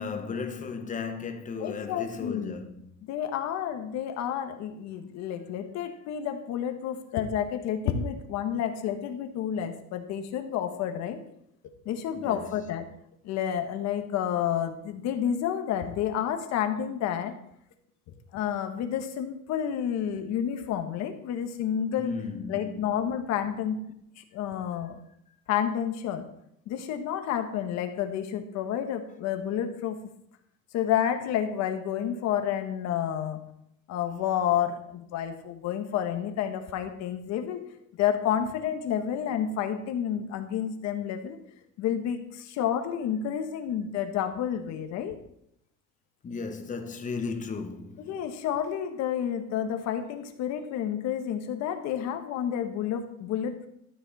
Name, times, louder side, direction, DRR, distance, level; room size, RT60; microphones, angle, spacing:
voice 1, 0.0-2.9 12.1-12.5 22.0-22.9 46.2-48.2, left 5 dB, 25° left, 1.3 m, -35 dB
voice 2, 1.6-2.6 3.0-11.2 11.8-12.9 13.2-17.3 18.1-22.1 22.5-23.8 24.2-25.0 25.5-26.3 26.7-30.0 30.7-33.4 33.9-37.6 38.0-41.4 41.8-45.1 48.0-53.7, left 9 dB, 60° left, 1.5 m, -30 dB
13.0 x 8.8 x 4.2 m
cardioid pair, 150°, 30 cm